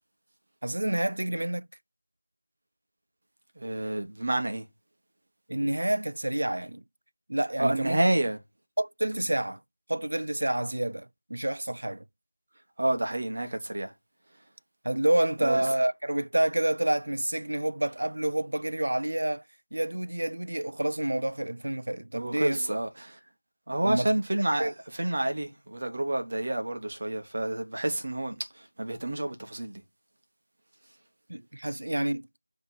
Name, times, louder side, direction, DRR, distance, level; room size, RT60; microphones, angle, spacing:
voice 1, 0.6-1.7 5.5-6.8 7.3-8.0 8.8-9.6 9.9-12.0 14.8-19.4 19.7-22.8 23.8-24.1 24.6-24.7 31.3-32.3, right 1 dB, 60° right, 0.3 m, -28 dB
voice 2, 3.6-4.7 7.6-8.4 12.8-13.9 15.4-15.7 22.1-23.2 23.7-29.8, right 1 dB, 30° right, 0.9 m, -29 dB
7.0 x 2.9 x 5.3 m
figure-of-eight pair, 180°, 0 cm